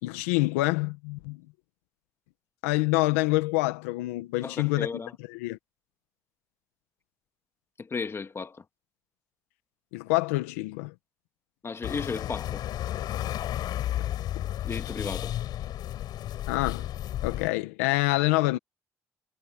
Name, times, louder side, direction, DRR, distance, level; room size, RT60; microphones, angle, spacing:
voice 1, 0.0-1.4 2.6-4.9 5.3-5.6 9.9-10.9 14.3-14.4 16.5-16.9 17.2-18.6, left 21 dB, 90° left, 1.7 m, -26 dB
voice 2, 4.4-5.1 7.8-8.6 11.6-12.6 14.6-15.4, left 4 dB, 35° left, 2.1 m, -34 dB
sound 1, 11.8-17.5, left 12 dB, 70° left, 6.7 m, -32 dB
hypercardioid pair, 55°, 7 cm